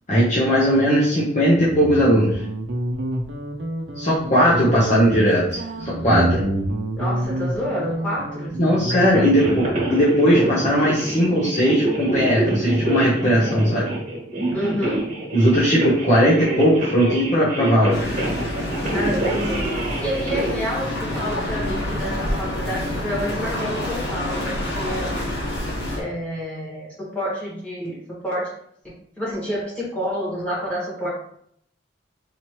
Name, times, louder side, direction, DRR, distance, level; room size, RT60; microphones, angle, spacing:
voice 1, 0.1-2.4 4.0-6.4 8.6-13.9 15.3-18.2, equal, 35° left, -7 dB, 0.9 m, -18 dB
Guitar, 1.5-10.0, right 1 dB, 60° right, 0.6 m, -27 dB
voice 2, 7.0-8.6 8.9-9.3 14.5-15.0 18.9-19.6 20.0-25.1 25.9-27.9 28.2-28.5 28.8-31.1, equal, 5° left, -8 dB, 1.7 m, -28 dB
sound 1, 9.2-20.5, right 2 dB, 40° right, 1.6 m, -26 dB
sound 2, 17.9-26.0, left 1 dB, 70° left, 1.3 m, -27 dB
4.1 x 3.0 x 3.1 m, 0.68 s
head